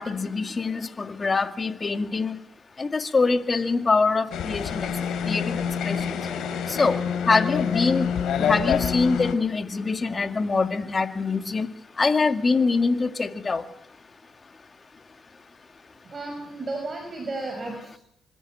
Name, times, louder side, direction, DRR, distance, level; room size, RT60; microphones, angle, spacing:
voice 1, 0.0-2.4 2.8-4.9 5.3-5.4 5.9-6.2 6.8-7.0 7.3-8.1 8.5-11.7 12.0-13.6, left 4 dB, 30° left, 7 dB, 2.1 m, -24 dB
sound 1, 4.3-9.3, left 7 dB, 75° left, 4.0 m, -26 dB
voice 2, 16.0-18.0, right 2 dB, 35° right, 3 dB, 6.0 m, -33 dB
26.0 x 14.5 x 9.0 m, 0.73 s
cardioid pair, 90°, 0 cm